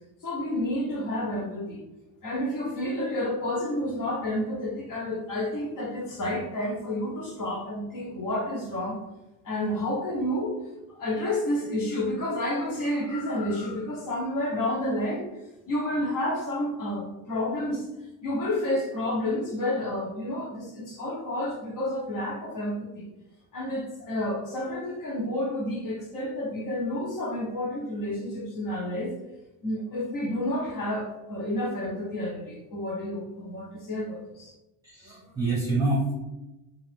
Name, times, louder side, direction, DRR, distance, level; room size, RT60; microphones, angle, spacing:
voice 1, 0.2-1.8 2.2-9.0 9.4-10.6 10.9-15.3 15.7-17.9 18.2-23.1 23.5-29.1 29.6-34.5, left 1 dB, 50° left, -3 dB, 1.2 m, -30 dB
voice 2, 34.8-36.1, right 2 dB, 10° right, -6 dB, 0.9 m, -26 dB
4.0 x 2.6 x 3.4 m, 1.0 s
cardioid pair, 140°, 39 cm